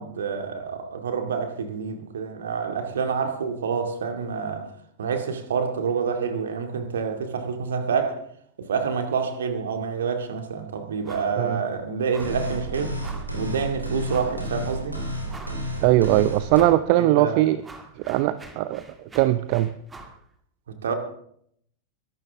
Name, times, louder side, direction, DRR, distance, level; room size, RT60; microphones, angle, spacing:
voice 1, 0.0-4.7 5.0-8.2 8.6-13.0 13.3-15.0 17.0-17.4 20.7-20.9, right 6 dB, 65° right, 2.3 m, -28 dB
sound 1, 11.0-11.4 11.7-11.8 12.1-12.5 13.0-13.4 14.1-14.4 14.9-15.0 15.3-15.8 16.5-16.9 17.2-20.2, right 2 dB, 15° right, 2.3 m, -45 dB
sound 2, 12.2-16.6, equal, 85° right, 3.4 m, -31 dB
voice 2, 15.8-17.6 18.1-18.8 19.1-19.7, right 15 dB, 45° right, 0.6 m, -20 dB
22.0 x 12.0 x 3.6 m
figure-of-eight pair, 90°, 0 cm